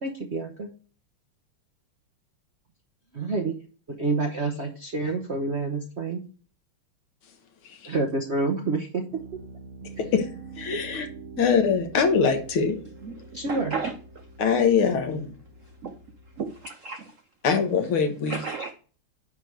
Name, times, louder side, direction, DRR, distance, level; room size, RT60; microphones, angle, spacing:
voice 1, 0.0-0.7 3.1-3.5 4.0-6.2 7.9-9.0 10.7-10.8 13.3-13.7, right 3 dB, 55° right, 1 dB, 0.7 m, -28 dB
Piano, 9.1-16.6, right 4 dB, 70° right, 2.0 m, -45 dB
voice 2, 10.0-10.3 10.6-11.1 11.4-12.8 14.4-15.3 17.4-18.4, left 6 dB, 75° left, 6 dB, 2.1 m, -23 dB
voice 3, 13.5-13.9 14.5-14.6 15.8-15.9 16.4-17.1 18.3-18.7, right 5 dB, 90° right, 6 dB, 0.6 m, -33 dB
9.8 x 3.4 x 6.3 m, 0.40 s
omnidirectional pair, 2.4 m